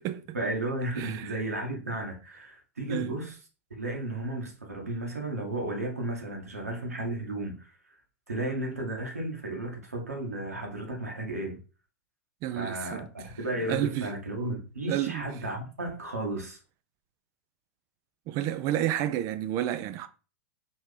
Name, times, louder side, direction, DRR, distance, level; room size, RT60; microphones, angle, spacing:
voice 1, 0.3-3.4 3.7-7.7 8.3-11.6 12.5-16.6, right 2 dB, 90° right, 1.3 m, -34 dB
voice 2, 1.0-1.3 2.9-3.1 12.4-13.1 13.7-14.1 14.9-15.2 18.3-20.1, right 12 dB, 40° right, 0.5 m, -30 dB
4.5 x 3.1 x 3.3 m
hypercardioid pair, 100°, 8 cm